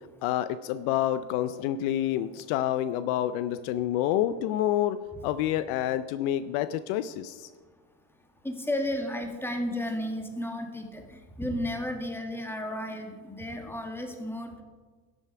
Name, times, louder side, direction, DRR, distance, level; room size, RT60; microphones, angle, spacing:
voice 1, 0.2-5.0 5.2-7.5, left 12 dB, 65° left, 13 dB, 0.6 m, -28 dB
voice 2, 8.4-11.0 11.4-14.6, left 1 dB, 5° left, 3 dB, 1.9 m, -33 dB
11.5 x 7.8 x 4.7 m, 1.4 s
hypercardioid pair, 85°, 48 cm